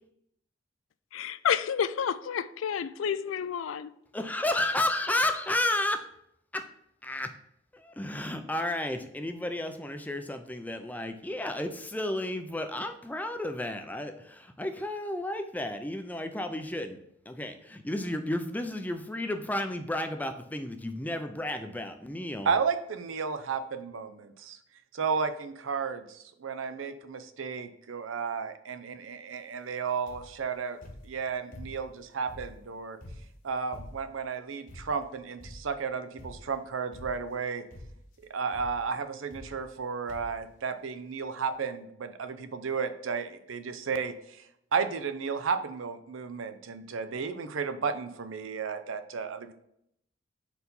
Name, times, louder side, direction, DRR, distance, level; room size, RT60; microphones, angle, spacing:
voice 1, 1.1-3.9, left 8 dB, 90° left, 0.4 m, -30 dB
voice 2, 4.1-6.1 6.5-6.7 7.0-7.3 7.7-17.0 17.3-22.5, left 1 dB, 10° left, 0.4 m, -32 dB
voice 3, 22.5-24.6 24.9-30.8 31.0-33.0 33.4-37.6 38.3-44.1 44.7-49.5, right 5 dB, 85° right, 0.5 m, -33 dB
sound 1, 30.1-30.4 30.8-32.0 32.3-34.2 34.7-35.1 35.4-35.8 36.2-36.6 36.9-37.4 37.7-38.1 38.5-38.8 39.3-39.8 40.1-40.5 41.2-41.3 41.5-41.6, left 1 dB, 45° left, 1.1 m, -47 dB
4.6 x 4.0 x 5.2 m
head